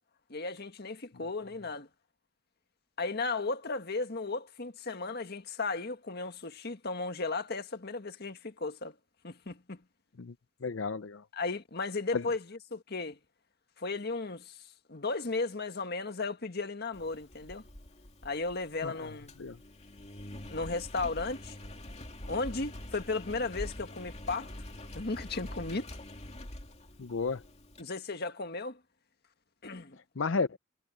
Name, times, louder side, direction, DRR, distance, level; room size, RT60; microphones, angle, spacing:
voice 1, 0.3-1.9 3.0-8.9 9.2-9.8 11.3-13.2 13.8-14.6 14.9-17.6 18.2-19.3 20.5-21.6 22.3-24.5 24.9-25.9 27.8-28.8 29.6-30.0, left 3 dB, 55° left, 1.7 m, -35 dB
voice 2, 10.6-11.2 12.1-12.2 18.8-19.1 19.4-19.6 27.0-27.4 30.2-30.6, left 4 dB, 80° left, 0.6 m, -32 dB
Engine, 16.9-27.8, left 1 dB, 35° left, 2.6 m, -45 dB
head